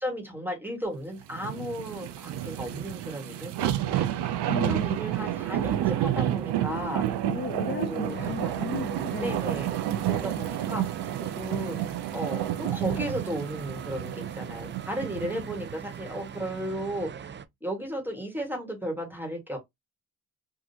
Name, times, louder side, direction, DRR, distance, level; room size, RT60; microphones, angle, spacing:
voice 1, 0.0-4.3 4.6-7.2 7.6-8.5 9.2-11.8 12.1-17.3 17.6-19.6, equal, 5° right, 1.7 m, -35 dB
sound 1, 1.3-15.7 16.2-16.3, right 12 dB, 90° right, 0.6 m, -30 dB
voice 2, 4.5-4.9 6.6-9.5, left 8 dB, 30° left, 0.5 m, -36 dB
sound 2, 8.1-17.5, right 7 dB, 30° right, 0.4 m, -42 dB
3.7 x 2.7 x 2.8 m
cardioid pair, 85°, 39 cm